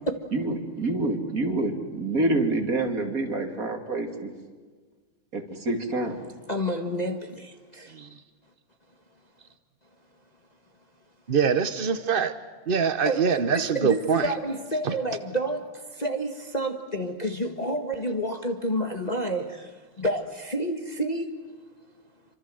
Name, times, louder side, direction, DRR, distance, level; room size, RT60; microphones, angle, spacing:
voice 1, 0.3-4.3 5.3-6.3, right 2 dB, 40° right, 4 dB, 2.9 m, -27 dB
voice 2, 6.5-8.1 13.0-21.3, right 1 dB, 20° left, 4 dB, 1.4 m, -29 dB
voice 3, 11.3-12.3 12.7-14.3 14.8-14.9, right 6 dB, 65° right, 11 dB, 0.5 m, -23 dB
27.0 x 25.5 x 7.8 m, 1.5 s
omnidirectional pair, 2.4 m